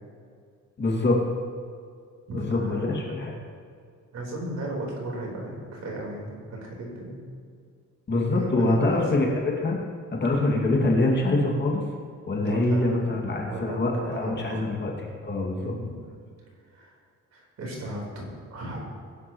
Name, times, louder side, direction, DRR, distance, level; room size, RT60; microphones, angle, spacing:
voice 1, 0.8-1.2 2.3-3.4 8.1-9.8 10.1-11.8 12.3-14.9 15.2-15.7, left 2 dB, 35° left, -2 dB, 2.4 m, -24 dB
voice 2, 2.3-3.0 4.1-7.2 8.3-9.0 12.4-14.7 15.6-15.9 16.7-16.9 17.3-18.8, right 1 dB, 60° right, -2 dB, 4.4 m, -35 dB
22.5 x 11.5 x 3.2 m, 2.2 s
cardioid pair, 160°, 30 cm